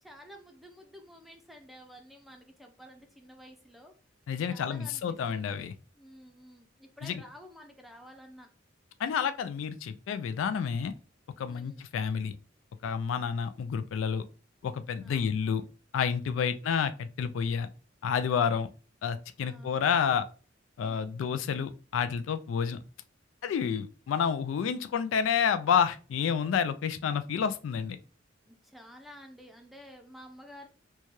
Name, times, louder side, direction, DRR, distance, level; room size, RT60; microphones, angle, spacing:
voice 1, 0.0-3.9 4.5-5.4 5.9-8.5 11.5-11.8 15.0-15.4 19.5-19.8 28.4-30.7, equal, ahead, 3 dB, 0.6 m, -51 dB
voice 2, 4.3-5.7 7.0-7.2 9.0-10.9 11.4-12.4 12.8-14.2 14.6-15.6 15.9-17.7 18.0-18.7 19.0-20.3 20.8-22.8 23.4-28.0, left 7 dB, 85° left, 11 dB, 0.3 m, -29 dB
4.5 x 2.3 x 3.0 m, 0.36 s
head